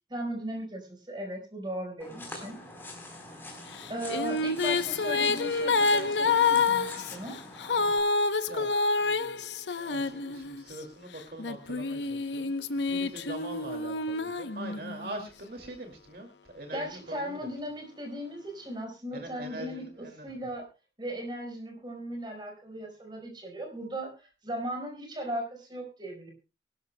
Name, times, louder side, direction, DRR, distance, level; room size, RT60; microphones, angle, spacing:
voice 1, 0.1-2.6 3.9-7.4 16.7-20.7 21.0-26.3, equal, 25° right, 1 dB, 4.6 m, -37 dB
sound 1, 2.0-8.0, left 2 dB, 10° left, 3.8 m, -45 dB
Female singing, 3.8-10.7 11.4-15.1, left 4 dB, 90° left, 0.8 m, -28 dB
voice 2, 8.5-9.5 9.7-17.5 19.1-20.3, right 1 dB, 55° right, 3 dB, 2.3 m, -43 dB
23.5 x 12.5 x 2.2 m, 0.29 s
head